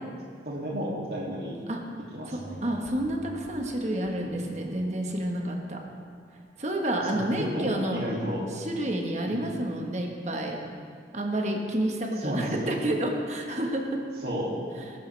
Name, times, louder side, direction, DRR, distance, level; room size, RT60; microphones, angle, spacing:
voice 1, 0.4-1.6 2.1-2.6 7.1-8.4 9.2-9.4 12.2-12.7 14.2-14.5, equal, 60° right, -4 dB, 2.5 m, -32 dB
sound 1, 2.3-7.2 7.7-7.8, equal, 30° left, 2.0 m, -49 dB
voice 2, 2.3-5.8 6.6-8.0 8.5-10.6 11.1-14.0, right 1 dB, 40° right, 1 dB, 1.3 m, -29 dB
20.0 x 11.5 x 3.4 m, 2.2 s
head